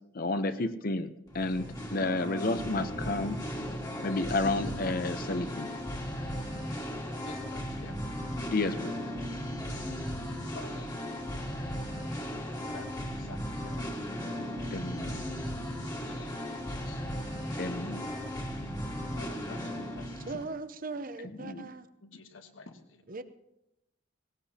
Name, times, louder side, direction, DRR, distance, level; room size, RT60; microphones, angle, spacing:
voice 1, 0.1-1.7 1.9-3.4 4.0-5.7 8.5-8.9 14.7-15.3 17.6-18.1 21.4-21.7, left 2 dB, 45° left, 11 dB, 0.7 m, -31 dB
Singing, 1.3-20.4, equal, 20° left, 1.7 m, -36 dB
voice 2, 7.2-8.0 10.4-10.9 12.6-13.9 15.9-17.1 19.1-20.4 22.0-23.0, left 4 dB, 75° left, 7 dB, 1.3 m, -50 dB
voice 3, 8.6-8.9 20.3-21.9 23.1-23.2, right 3 dB, 45° right, 11 dB, 0.8 m, -39 dB
18.5 x 18.0 x 2.9 m, 0.86 s
head